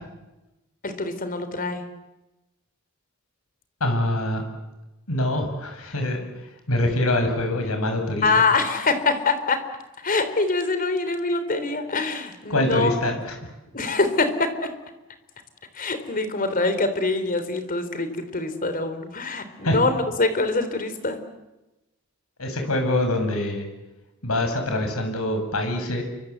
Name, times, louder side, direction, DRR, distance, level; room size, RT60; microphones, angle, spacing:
voice 1, 0.8-1.8 8.2-9.6 10.0-12.9 13.7-14.5 15.7-21.2, left 3 dB, 40° left, 9 dB, 3.7 m, -24 dB
voice 2, 3.8-4.4 5.1-8.4 12.5-13.4 19.6-19.8 22.4-23.7 24.2-26.0, left 1 dB, 85° left, 5 dB, 6.8 m, -24 dB
30.0 x 24.5 x 8.2 m, 1.0 s
head